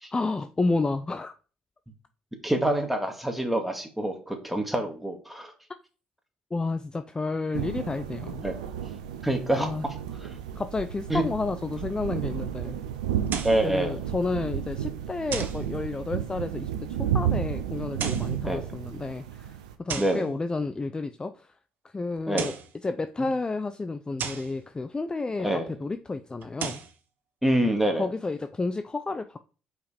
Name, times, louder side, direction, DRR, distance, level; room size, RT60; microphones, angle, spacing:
voice 1, 0.1-1.3 6.5-8.4 9.5-9.9 10.6-12.8 13.6-21.5 21.9-22.5 22.8-26.8 27.9-29.4, left 3 dB, 20° left, 0.5 m, -31 dB
voice 2, 2.4-5.5 8.4-8.5 9.2-9.7 10.3-10.4 11.1-11.2 13.4-14.0 18.5-18.7 20.0-20.3 22.3-22.5 25.4-25.7 27.4-28.1, right 1 dB, 5° right, 2.1 m, -26 dB
sound 1, 7.5-19.7, right 9 dB, 85° right, 0.6 m, -32 dB
sound 2, 13.3-13.7 15.3-15.7 17.8-18.4 19.9-20.2 22.2-22.7 24.2-24.5 26.4-26.9, right 7 dB, 55° right, 1.0 m, -34 dB
5.0 x 4.9 x 5.1 m
hypercardioid pair, 50°, 4 cm